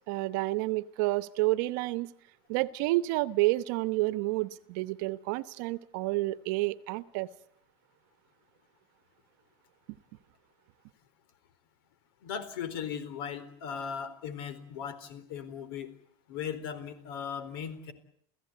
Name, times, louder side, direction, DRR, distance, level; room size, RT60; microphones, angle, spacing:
voice 1, 0.1-2.1 2.5-7.3, right 19 dB, 55° right, 15 dB, 1.1 m, -29 dB
voice 2, 12.2-15.9 16.3-17.9, left 7 dB, 70° left, 14 dB, 4.3 m, -38 dB
29.5 x 16.5 x 9.5 m, 0.68 s
supercardioid pair, 175°, 12 cm